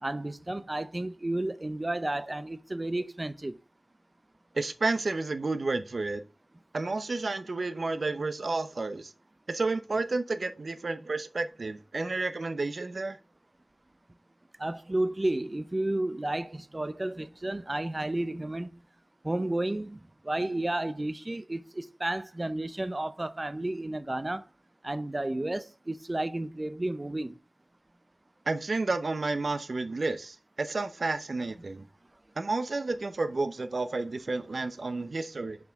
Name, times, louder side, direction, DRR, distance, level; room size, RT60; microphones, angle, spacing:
voice 1, 0.0-3.6 14.6-18.8 19.2-24.4 24.8-27.4, right 1 dB, 35° right, 0.5 m, -32 dB
voice 2, 4.5-6.2 6.7-9.1 9.5-13.2 28.5-31.8 32.4-35.6, right 3 dB, 75° right, 0.8 m, -31 dB
7.0 x 6.0 x 3.6 m
wide cardioid pair, 65°, 0 cm